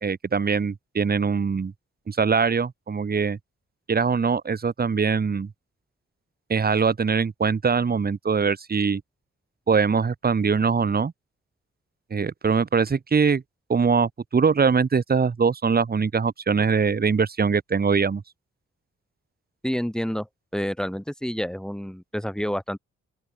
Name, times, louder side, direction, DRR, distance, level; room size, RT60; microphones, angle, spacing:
voice 1, 0.0-1.7 2.1-3.4 3.9-5.5 6.5-9.0 9.7-11.1 12.1-13.4 13.7-18.2, right 5 dB, 30° right, 0.8 m, -22 dB
voice 2, 19.6-20.3 20.5-22.8, equal, ahead, 5.8 m, -28 dB
open air
supercardioid pair, 40°, 31 cm